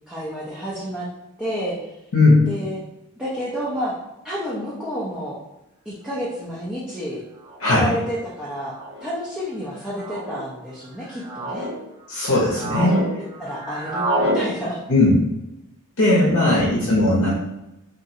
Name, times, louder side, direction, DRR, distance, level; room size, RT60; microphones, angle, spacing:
voice 1, 0.1-1.1 1.4-1.9 2.5-2.8 3.2-3.9 4.2-5.4 5.9-7.2 7.7-8.7 9.0-11.7 12.9-13.1 13.4-14.8 16.4-16.9, equal, 5° right, -8 dB, 0.5 m, -30 dB
sound 1, 6.3-6.4 7.5-7.7 8.7-9.1 9.9-10.4 11.0-11.7 12.2-13.1 13.3-14.4, right 1 dB, 90° right, 0.8 m, -27 dB
voice 2, 7.6-7.9 12.1-13.0 14.9-15.1 16.0-17.3, left 2 dB, 60° left, -6 dB, 0.7 m, -17 dB
2.9 x 2.5 x 2.6 m, 0.93 s
head